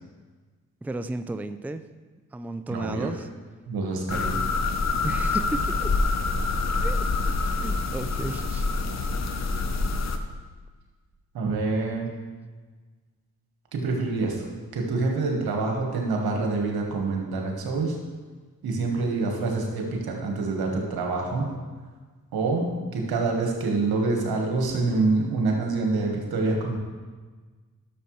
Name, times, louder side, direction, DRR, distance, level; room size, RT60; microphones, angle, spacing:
voice 1, 0.8-1.8 2.3-3.3 5.0-5.9 6.8-7.0 7.6-8.7, right 2 dB, 5° right, 10 dB, 0.4 m, -33 dB
voice 2, 2.7-3.1 3.7-4.4 11.3-12.1 13.7-14.5 14.7-18.0 18.6-21.5 22.3-26.8, right 3 dB, 85° right, 1 dB, 1.6 m, -26 dB
sound 1, 4.1-10.2, left 3 dB, 45° left, 0.9 m, -26 dB
12.0 x 6.5 x 3.2 m, 1.4 s
supercardioid pair, 45°, 36 cm